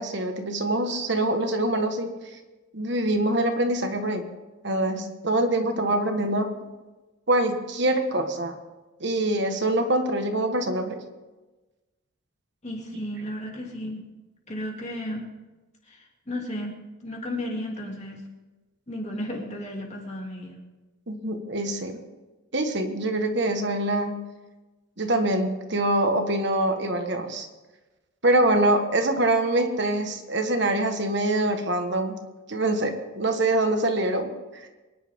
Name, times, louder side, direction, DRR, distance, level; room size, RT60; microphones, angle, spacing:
voice 1, 0.0-2.1 2.7-4.2 4.6-6.5 7.3-8.5 9.0-11.0 21.1-22.0 22.5-24.2 25.0-27.5 28.2-32.1 32.5-34.3 34.6-34.7, right 1 dB, 55° right, 5 dB, 1.4 m, -24 dB
voice 2, 12.6-14.0 14.5-15.3 15.9-16.7 17.0-18.2 18.9-20.6, left 1 dB, 30° left, -1 dB, 2.8 m, -33 dB
24.0 x 10.5 x 3.6 m, 1.2 s
head